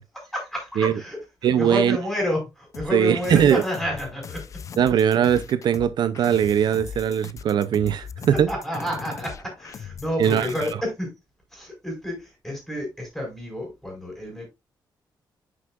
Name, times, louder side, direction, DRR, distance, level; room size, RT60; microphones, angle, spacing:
voice 1, 0.3-1.2 1.5-4.5 4.9-5.1 8.3-11.1 11.5-14.5, left 1 dB, ahead, 4.8 m, -30 dB
voice 2, 1.4-2.0 2.9-3.6 4.8-8.5 10.2-10.5, right 9 dB, 70° right, 0.5 m, -20 dB
sound 1, 2.7-10.7, left 7 dB, 45° left, 0.4 m, -39 dB
9.5 x 6.1 x 2.4 m
wide cardioid pair, 170°, 8 cm